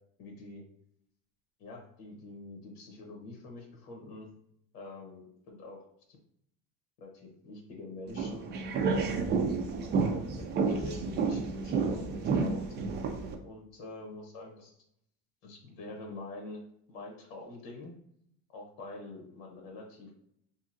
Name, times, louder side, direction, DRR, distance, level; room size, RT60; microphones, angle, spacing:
voice 1, 0.2-0.6 1.6-4.3 4.7-5.9 7.0-8.5 8.9-9.3 10.0-12.6 13.4-14.7 15.4-16.6 16.9-17.9 18.5-20.1, left 2 dB, 80° left, 1 dB, 0.9 m, -45 dB
sound 1, 8.1-13.3, right 4 dB, 35° right, 0.4 m, -30 dB
2.8 x 2.6 x 2.5 m, 0.72 s
cardioid pair, 125°, 29 cm